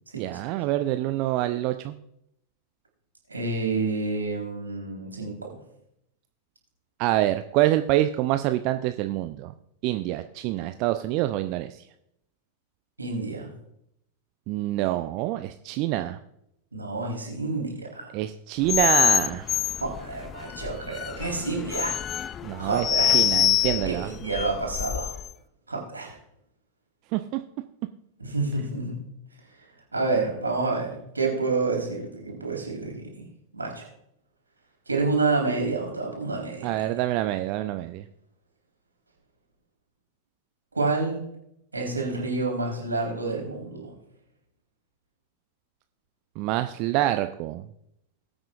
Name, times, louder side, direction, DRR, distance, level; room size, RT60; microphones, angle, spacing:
voice 1, 0.1-1.9 7.0-9.5 9.8-11.9 14.5-16.2 18.1-19.5 22.4-24.1 27.1-27.4 36.6-38.1 46.4-47.7, right 15 dB, 40° right, 9 dB, 0.5 m, -26 dB
voice 2, 3.3-5.6 13.0-13.5 16.7-18.2 19.8-22.0 22.3-23.1 23.6-25.1 25.7-26.2 28.2-29.0 29.6-29.7 29.9-33.3 33.5-33.9 34.9-36.7 40.7-41.2 41.7-43.9, right 3 dB, 80° right, -1 dB, 3.8 m, -29 dB
sound 1, 18.6-25.3, left 10 dB, 25° left, 0.3 m, -25 dB
20.5 x 8.8 x 2.5 m, 0.79 s
figure-of-eight pair, 90°, 0 cm